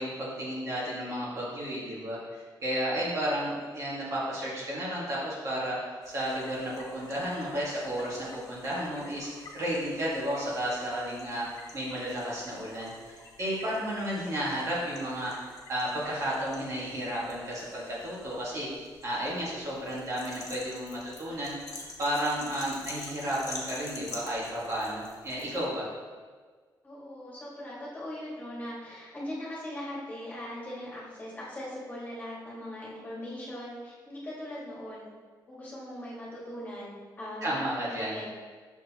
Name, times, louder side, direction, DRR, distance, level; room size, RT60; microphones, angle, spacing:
voice 1, 0.0-18.7 19.0-25.9 37.4-38.2, equal, 45° right, -6 dB, 1.9 m, -33 dB
sound 1, 6.0-25.7, left 3 dB, 50° left, 1.3 m, -48 dB
voice 2, 26.8-35.1 35.5-38.3, left 1 dB, 25° left, -6 dB, 1.9 m, -40 dB
6.6 x 6.2 x 3.0 m, 1.5 s
wide cardioid pair, 145°, 8 cm